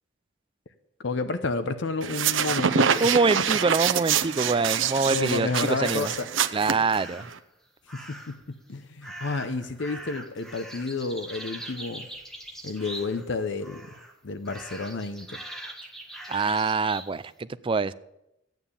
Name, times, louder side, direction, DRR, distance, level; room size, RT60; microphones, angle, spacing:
voice 1, 1.0-3.1 5.1-6.3 7.9-12.1 12.6-13.9 14.2-15.4, left 3 dB, 70° left, 10 dB, 0.7 m, -30 dB
sound 1, 2.0-7.4, right 7 dB, 90° right, 0.7 m, -26 dB
voice 2, 3.0-6.1 6.5-7.3 16.3-17.9, right 4 dB, 25° right, 15 dB, 0.4 m, -25 dB
sound 2, 6.8-7.4 7.9-8.4 9.0-13.3 13.6-14.1 14.4-17.1, right 1 dB, 5° left, 1.5 m, -42 dB
13.0 x 9.2 x 6.9 m, 0.86 s
head